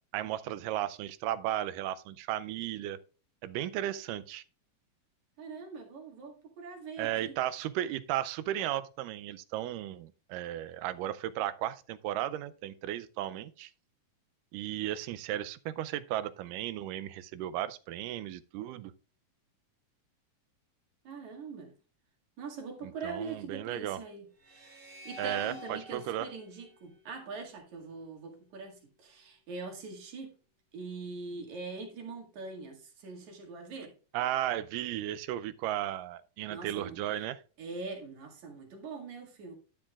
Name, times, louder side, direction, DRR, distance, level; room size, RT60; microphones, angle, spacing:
voice 1, 0.1-3.0 3.4-4.4 7.0-13.7 14.5-18.9 22.8-24.0 25.2-26.3 34.1-37.4, right 12 dB, 80° right, 2.0 m, -35 dB
voice 2, 5.4-7.3 21.0-21.7 22.4-24.3 24.9-30.4 30.7-33.9 36.5-37.3 37.6-39.5, right 4 dB, 60° right, 3.2 m, -43 dB
sound 1, 24.4-27.7, equal, 35° right, 1.3 m, -48 dB
11.5 x 8.6 x 2.4 m
omnidirectional pair, 4.0 m